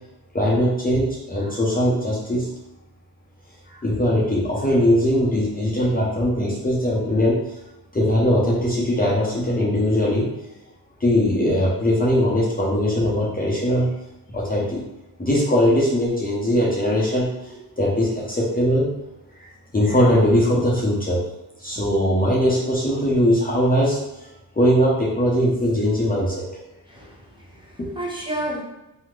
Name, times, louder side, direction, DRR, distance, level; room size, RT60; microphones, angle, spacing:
voice 1, 0.3-2.5 3.7-7.4 7.9-10.3 11.0-13.9 14.3-14.8 15.2-18.9 19.4-19.5 19.7-21.2 21.6-24.0 24.6-26.4 27.8-27.9, equal, 20° left, -6 dB, 0.9 m, -20 dB
voice 2, 26.9-27.2 27.5-28.6, right 1 dB, 10° right, -5 dB, 1.0 m, -31 dB
2.9 x 2.2 x 3.7 m, 0.94 s
supercardioid pair, 60°, 44 cm